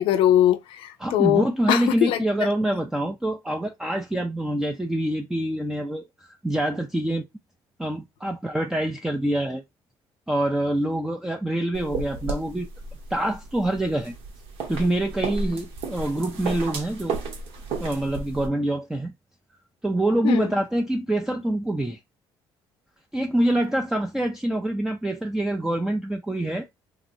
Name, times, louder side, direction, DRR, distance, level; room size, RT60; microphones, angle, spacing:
voice 1, 0.0-2.2 20.2-20.5, left 12 dB, 70° left, 0.5 m, -21 dB
voice 2, 1.0-7.2 7.8-9.6 10.3-12.7 13.1-14.1 14.7-17.2 17.8-19.1 19.8-22.0 23.1-26.7, right 1 dB, 5° right, 0.4 m, -25 dB
sound 1, 11.7-18.5, right 3 dB, 75° right, 1.0 m, -33 dB
2.9 x 2.8 x 2.6 m
cardioid pair, 115°, 9 cm